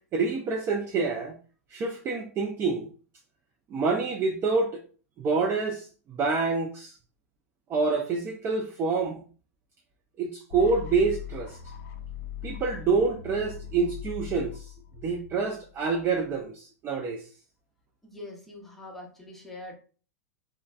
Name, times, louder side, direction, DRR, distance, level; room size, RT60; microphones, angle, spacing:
voice 1, 0.1-1.4 1.7-2.9 3.7-4.8 5.2-7.0 7.7-9.2 10.2-11.6 12.4-14.7 15.0-17.2, right 4 dB, 25° right, 1 dB, 0.4 m, -27 dB
sound 1, 10.5-16.4, left 10 dB, 55° left, 0.4 m, -40 dB
voice 2, 18.0-19.7, left 2 dB, ahead, -1 dB, 0.9 m, -43 dB
3.1 x 2.1 x 2.3 m, 0.39 s
hypercardioid pair, 100°, 9 cm